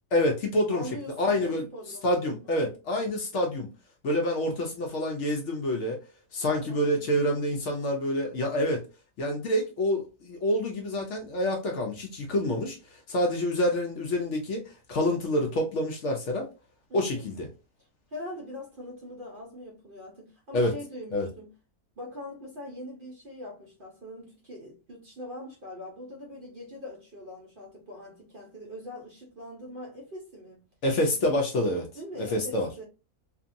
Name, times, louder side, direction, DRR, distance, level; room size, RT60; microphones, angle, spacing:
voice 1, 0.1-0.8 1.2-1.6 2.0-3.7 4.0-6.0 6.3-8.8 9.2-14.6 14.9-16.5 16.9-17.5 20.5-20.7 21.1-21.3 30.8-31.8 32.2-32.8, left 1 dB, 65° left, 0.8 m, -27 dB
voice 2, 0.7-2.4 6.4-7.1 16.9-17.3 17.8-21.5 22.0-30.7 31.2-31.4 31.9-32.8, left 1 dB, 50° right, 0.7 m, -42 dB
2.7 x 2.5 x 2.5 m
omnidirectional pair, 1.6 m